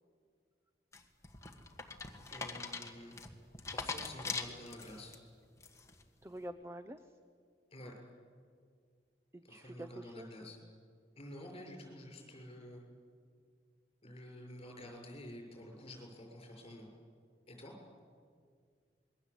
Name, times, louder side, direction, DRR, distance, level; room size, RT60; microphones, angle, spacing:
sound 1, 0.9-5.1 5.6-6.0, left 4 dB, 15° left, 1.8 m, -42 dB
voice 1, 2.3-3.2 3.7-5.1 7.7-7.9 9.4-10.6 11.2-12.8 14.0-16.9 17.5-17.7, left 1 dB, 35° left, 2 dB, 6.7 m, -49 dB
voice 2, 6.2-7.1 9.3-10.7, right 1 dB, 15° right, 10 dB, 0.7 m, -48 dB
27.0 x 22.0 x 8.5 m, 2.1 s
head